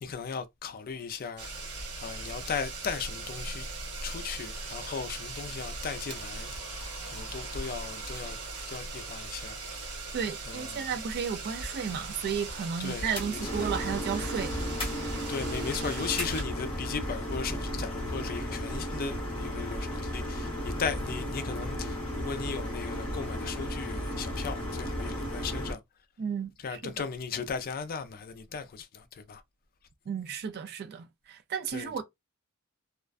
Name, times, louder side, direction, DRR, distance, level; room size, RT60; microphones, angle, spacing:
voice 1, 0.0-1.5 2.0-3.7 4.0-8.4 8.7-10.1 10.5-10.9 12.8-13.7 15.3-25.8 26.6-29.4 31.7-31.9, left 6 dB, 40° left, 0.4 m, -37 dB
sound 1, 1.4-16.4, right 3 dB, 85° right, 0.8 m, -39 dB
voice 2, 10.1-14.6 26.2-26.9 30.1-32.0, right 7 dB, 45° right, 0.3 m, -33 dB
sound 2, 13.1-25.7, equal, 25° left, 0.9 m, -34 dB
2.4 x 2.1 x 2.3 m
head